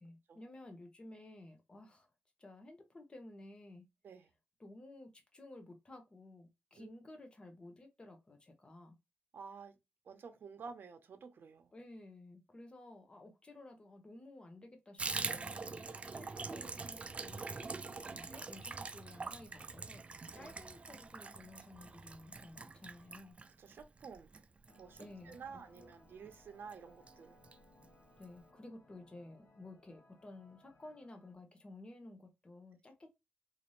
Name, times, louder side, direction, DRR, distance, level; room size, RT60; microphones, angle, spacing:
voice 1, 0.0-2.1 2.4-3.9 4.6-8.9 11.7-20.0 20.3-23.4 25.0-25.9 28.2-33.1, left 2 dB, 25° left, 0.8 m, -54 dB
voice 2, 9.3-9.8 10.0-11.7 16.1-16.7 20.4-20.5 23.6-24.3 24.8-27.4, right 5 dB, 65° right, 0.8 m, -51 dB
Water tap faucet / Bathtub (filling or washing), 15.0-25.9 26.3-26.4 26.7-26.8 27.1-27.6 27.8-27.9 28.2-28.3, right 4 dB, 30° right, 0.4 m, -44 dB
sound 1, 24.7-31.3, left 1 dB, 55° left, 1.1 m, -66 dB
4.1 x 2.5 x 3.1 m
wide cardioid pair, 130°, 4 cm